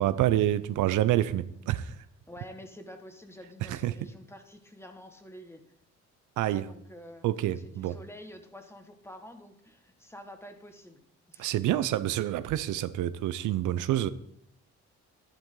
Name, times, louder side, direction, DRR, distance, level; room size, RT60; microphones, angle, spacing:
voice 1, 0.0-1.9 3.7-3.9 6.4-6.7 7.2-8.0 11.4-14.1, right 13 dB, 80° right, 14 dB, 0.6 m, -27 dB
voice 2, 2.3-5.6 6.4-11.0 11.3-11.6, equal, 10° left, 6 dB, 1.5 m, -48 dB
10.5 x 10.5 x 3.8 m, 0.70 s
cardioid pair, 90°, 30 cm